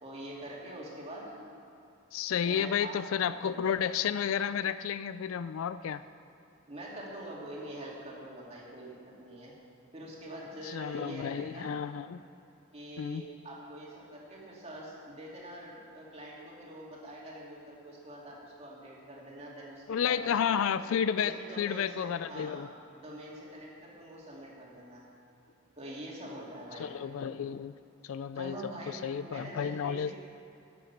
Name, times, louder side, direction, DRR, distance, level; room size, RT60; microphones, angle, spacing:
voice 1, 0.0-1.4 2.4-3.8 6.7-9.6 9.9-11.8 12.7-20.4 21.2-22.7 22.9-25.0 25.8-26.9 28.3-30.2, right 1 dB, 30° right, -4 dB, 2.4 m, -45 dB
voice 2, 2.1-6.0 10.7-12.2 13.0-13.2 19.9-22.7 26.8-27.7 28.0-28.6 28.9-30.1, left 8 dB, 65° left, 14 dB, 0.3 m, -31 dB
13.0 x 9.5 x 5.9 m, 2.8 s
head